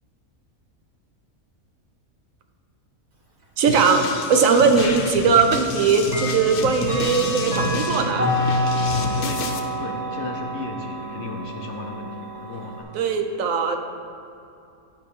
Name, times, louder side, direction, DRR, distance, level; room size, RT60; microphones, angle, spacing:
voice 1, 3.6-8.3 12.9-13.8, right 5 dB, 70° right, 5 dB, 1.0 m, -19 dB
sound 1, 3.7-9.6, left 5 dB, 85° left, 1.1 m, -30 dB
Clock, 4.7-4.8 6.0-12.8, equal, 35° right, 1.1 m, -27 dB
voice 2, 9.0-12.9, left 3 dB, 60° left, 2 dB, 0.9 m, -35 dB
11.0 x 5.0 x 3.6 m, 2.6 s
omnidirectional pair, 1.5 m